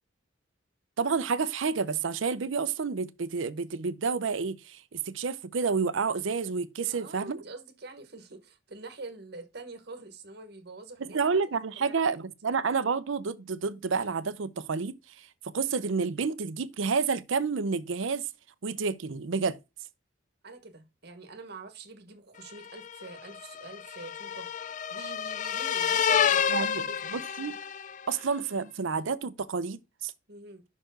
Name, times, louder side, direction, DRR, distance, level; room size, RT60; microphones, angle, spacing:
voice 1, 1.0-7.4 11.1-15.3 15.5-18.2 18.6-19.6 26.5-26.8 27.1-27.6 28.1-30.1, right 5 dB, 75° right, 0.6 m, -29 dB
voice 2, 6.9-11.2 11.7-12.2 20.4-27.1 30.3-30.6, right 3 dB, 55° right, 1.2 m, -46 dB
sound 1, 22.6-28.1, left 8 dB, 40° left, 0.3 m, -29 dB
5.9 x 4.5 x 6.4 m
head